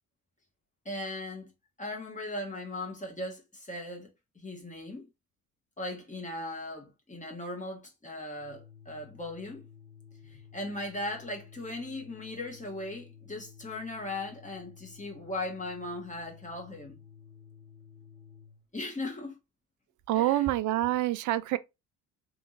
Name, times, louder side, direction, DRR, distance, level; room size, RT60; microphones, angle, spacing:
voice 1, 0.8-1.5 1.8-5.1 5.8-9.7 10.2-17.0 18.7-19.4 20.1-20.5, left 2 dB, 15° left, 1.6 m, -38 dB
Organ, 8.3-18.7, left 7 dB, ahead, 1.5 m, -53 dB
voice 2, 20.1-21.6, right 15 dB, 40° right, 0.4 m, -26 dB
3.4 x 2.9 x 2.7 m
figure-of-eight pair, 50°, 48 cm